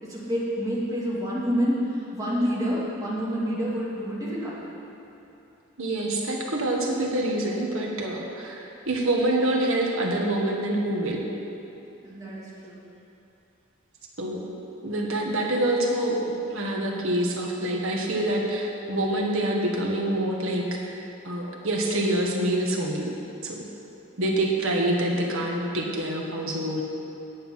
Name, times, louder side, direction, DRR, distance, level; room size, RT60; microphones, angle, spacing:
voice 1, 0.0-4.6 12.0-12.8, equal, 15° right, -7 dB, 2.3 m, -28 dB
voice 2, 5.8-11.3 14.2-14.5 14.8-16.2 16.5-20.8 21.2-23.1 23.4-23.6 24.2-26.8, right 1 dB, 80° right, -1 dB, 1.5 m, -26 dB
9.6 x 8.0 x 5.7 m, 2.9 s
head